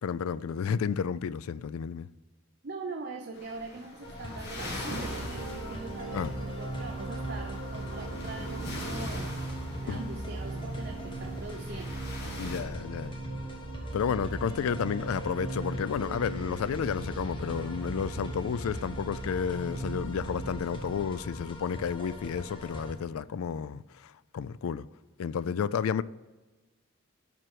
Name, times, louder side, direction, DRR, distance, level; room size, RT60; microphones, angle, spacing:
voice 1, 0.0-2.1 6.1-6.3 9.9-10.0 12.4-13.1 13.9-24.9 25.2-26.0, left 7 dB, 85° left, 0.3 m, -31 dB
voice 2, 2.6-9.5 9.8-12.0, right 3 dB, 50° right, 0.7 m, -42 dB
sound 1, 3.3-12.6, left 2 dB, 50° left, 1.7 m, -43 dB
sound 2, 4.0-22.9, left 1 dB, 25° left, 1.3 m, -42 dB
sound 3, 4.5-20.9, right 2 dB, 75° right, 1.6 m, -39 dB
11.0 x 4.5 x 4.6 m
head